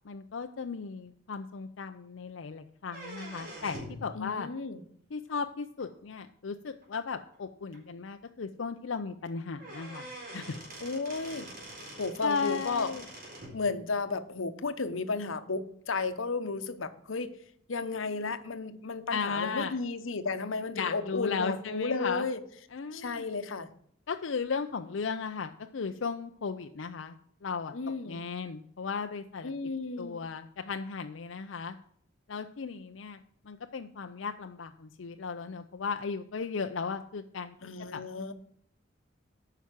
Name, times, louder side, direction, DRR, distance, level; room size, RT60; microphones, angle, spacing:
voice 1, 0.0-4.5 5.1-10.5 11.8-11.9 12.2-13.0 19.1-19.7 20.7-22.3 22.7-23.3 24.1-27.7 28.0-29.5 30.0-31.8 32.3-33.2 33.4-37.6 37.9-38.0, left 5 dB, 70° left, 6 dB, 0.5 m, -36 dB
sound 1, 2.8-4.0 5.8-5.9 6.8-6.9 7.3-7.4 7.7-7.8 9.2-9.3 9.6-13.6, right 1 dB, 45° right, 4.3 m, -44 dB
voice 2, 4.1-4.8 10.8-11.5 12.0-12.9 13.5-17.3 17.7-22.4 22.9-23.7 27.7-28.2 29.4-30.3 37.6-38.3, left 4 dB, 90° left, 11 dB, 0.9 m, -33 dB
9.2 x 5.8 x 7.4 m, 0.66 s
head